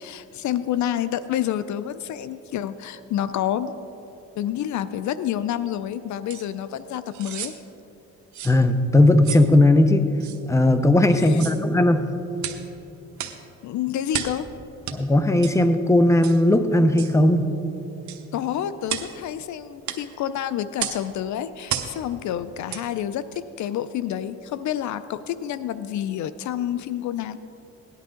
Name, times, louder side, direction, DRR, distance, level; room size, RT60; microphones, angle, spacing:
voice 1, 0.0-3.8 4.4-7.6 11.2-11.5 13.6-14.5 18.3-27.4, left 10 dB, 70° left, 14 dB, 0.5 m, -28 dB
sound 1, 6.3-6.5 7.1-7.6 8.3-8.6 9.2-9.5 10.2-10.4 11.3-11.6 12.4-12.6 13.2-13.4 14.1-14.4 14.9-15.0 15.4-15.6 16.2-16.4 17.0-17.2 18.1-18.2 18.9-19.1 19.9-20.0 20.8-21.0 21.7-22.0 22.7-22.9 23.3-23.4, right 10 dB, 70° right, 1.0 m, -32 dB
voice 2, 8.4-10.1 10.5-12.1 14.9-17.5, left 1 dB, 10° left, 9 dB, 0.8 m, -17 dB
18.0 x 11.0 x 3.8 m, 2.9 s
cardioid pair, 90°, 30 cm